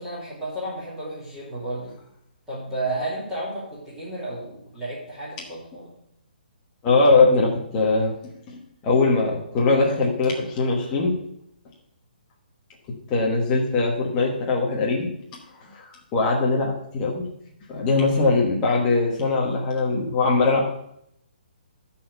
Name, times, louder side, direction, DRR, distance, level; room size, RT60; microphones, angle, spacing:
voice 1, 0.0-1.9 2.5-5.9, right 1 dB, 5° right, -11 dB, 2.8 m, -32 dB
voice 2, 6.8-8.1 8.5-11.1 13.1-15.1 15.7-15.8 16.1-17.2 17.7-20.8, left 3 dB, 15° left, -2 dB, 1.2 m, -21 dB
12.5 x 4.3 x 6.6 m, 0.75 s
hypercardioid pair, 175°, 5 cm